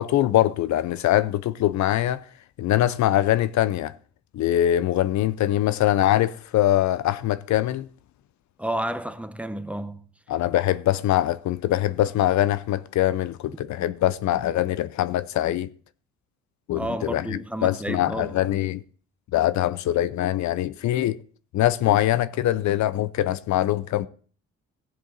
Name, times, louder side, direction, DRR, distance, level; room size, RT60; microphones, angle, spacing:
voice 1, 0.0-2.2 2.6-3.9 4.3-7.9 10.3-15.7 16.7-18.8 19.3-21.2 21.5-24.1, left 13 dB, 70° left, 0.5 m, -23 dB
voice 2, 8.6-10.0 16.7-18.3, right 1 dB, 5° right, 0.8 m, -31 dB
15.0 x 7.7 x 3.9 m
cardioid pair, 90°, 30 cm